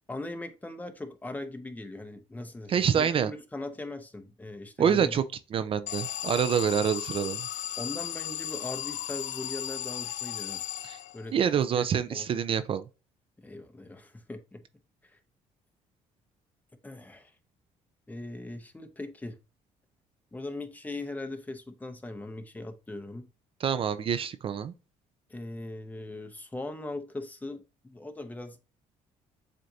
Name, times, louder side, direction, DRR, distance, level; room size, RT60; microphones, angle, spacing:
voice 1, 0.1-5.2 6.5-6.7 7.8-10.6 11.1-11.4 11.7-12.3 13.4-14.6 15.0-15.2 16.8-17.3 18.1-19.4 20.3-23.3 25.3-28.6, left 2 dB, 10° left, 0.9 m, -40 dB
voice 2, 2.7-3.3 4.8-5.2 5.5-7.5 10.8-11.0 11.3-12.8 23.6-24.7, right 8 dB, 45° right, 0.4 m, -26 dB
Alarm, 5.9-11.4, left 12 dB, 75° left, 0.5 m, -36 dB
7.6 x 2.6 x 2.7 m
cardioid pair, 95°, 13 cm